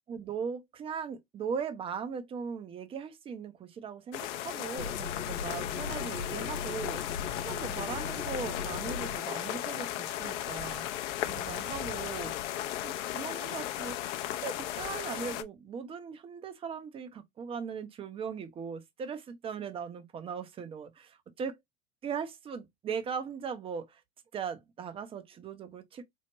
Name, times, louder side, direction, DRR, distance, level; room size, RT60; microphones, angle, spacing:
voice 1, 0.1-10.9 11.3-12.3 12.8-14.0 14.4-21.6 22.0-24.0 24.3-26.0, right 6 dB, 15° right, 0.4 m, -39 dB
sound 1, 4.1-15.4, left 12 dB, 60° left, 0.6 m, -36 dB
sound 2, 4.8-9.2, left 5 dB, 85° left, 1.0 m, -39 dB
4.5 x 2.1 x 2.8 m
hypercardioid pair, 105°, 42 cm